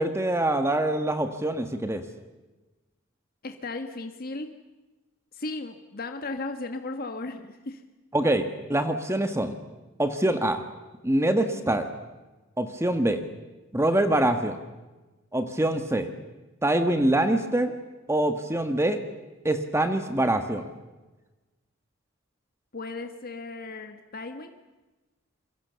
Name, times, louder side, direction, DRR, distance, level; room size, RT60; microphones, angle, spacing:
voice 1, 0.0-2.0 8.1-9.6 10.0-10.6 11.0-11.9 12.6-13.2 13.7-14.6 15.3-16.1 16.6-17.7 18.1-19.0 19.4-20.6, right 1 dB, 15° right, 8 dB, 1.4 m, -24 dB
voice 2, 3.4-4.5 5.3-7.8 22.7-24.6, left 3 dB, 50° left, 6 dB, 1.5 m, -36 dB
28.0 x 23.0 x 7.0 m, 1.1 s
head